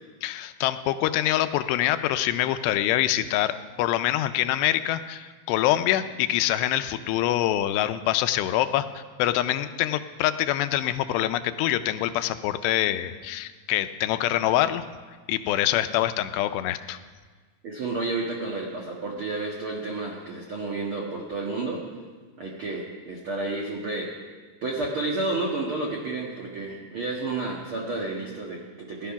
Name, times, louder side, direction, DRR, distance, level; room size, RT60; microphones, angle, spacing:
voice 1, 0.2-3.5 3.8-14.8 15.3-17.0, left 13 dB, 85° left, 11 dB, 2.7 m, -25 dB
voice 2, 17.6-21.9 22.4-24.2 24.6-29.1, right 2 dB, 80° right, -2 dB, 1.1 m, -31 dB
17.0 x 12.0 x 5.8 m, 1.5 s
omnidirectional pair, 4.9 m